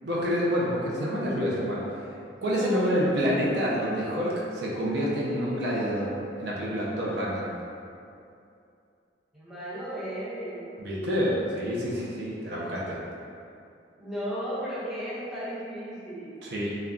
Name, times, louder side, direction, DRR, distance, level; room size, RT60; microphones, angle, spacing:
voice 1, 0.0-1.8 2.4-7.5 10.8-13.0 16.4-16.8, equal, 65° right, -5 dB, 0.5 m, -28 dB
voice 2, 2.5-3.2 9.3-10.9 12.4-12.7 14.0-16.4, equal, ahead, -11 dB, 0.7 m, -35 dB
2.2 x 2.2 x 3.6 m, 2.6 s
head